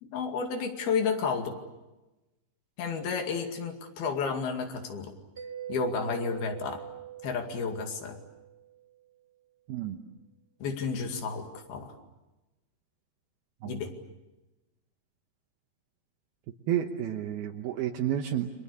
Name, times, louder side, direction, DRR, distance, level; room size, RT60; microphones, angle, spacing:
voice 1, 0.0-1.6 2.8-5.1 5.7-6.8 7.2-8.2 10.6-11.9 13.7-13.9, left 5 dB, 65° left, 5 dB, 4.1 m, -31 dB
Mallet percussion, 5.4-8.8, right 11 dB, 25° right, 1.4 m, -42 dB
voice 2, 16.7-18.6, right 10 dB, 75° right, 2 dB, 2.9 m, -31 dB
29.5 x 24.5 x 6.9 m, 1.0 s
omnidirectional pair, 4.8 m